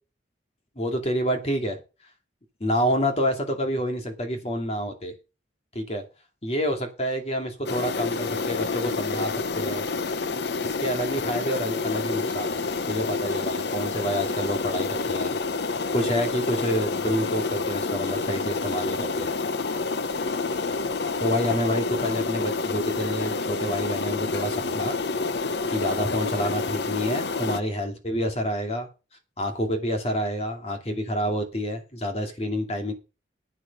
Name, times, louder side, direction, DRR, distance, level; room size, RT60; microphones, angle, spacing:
voice 1, 0.8-1.8 2.6-5.1 5.7-6.0 6.4-9.8 10.6-15.4 15.9-19.3 21.2-25.0 25.7-28.9 29.4-32.9, equal, 35° left, 4 dB, 2.4 m, -28 dB
sound 1, 7.6-27.6, left 4 dB, 65° left, 0.7 m, -28 dB
11.0 x 8.9 x 5.3 m, 0.30 s
head